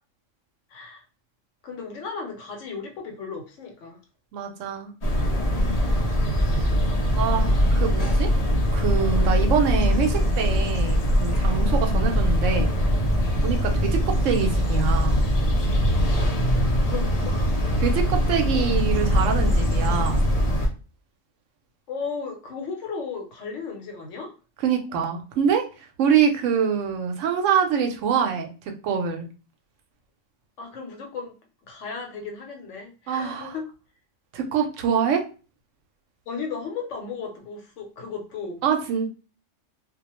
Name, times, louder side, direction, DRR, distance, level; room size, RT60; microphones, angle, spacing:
voice 1, 0.7-1.0 1.6-4.0 16.9-17.3 21.9-24.3 30.6-31.4 31.6-33.6 36.3-38.6, left 5 dB, 75° left, 2 dB, 1.0 m, -35 dB
voice 2, 4.3-4.9 7.2-8.3 8.7-12.7 13.4-15.2 17.8-20.2 24.6-25.6 26.0-28.5 28.8-29.3 33.1-33.5 34.3-35.2 38.6-39.1, right 7 dB, 80° right, 5 dB, 0.9 m, -25 dB
sound 1, 5.0-20.7, equal, 45° left, 0.5 m, -22 dB
2.3 x 2.1 x 2.9 m, 0.34 s
omnidirectional pair, 1.3 m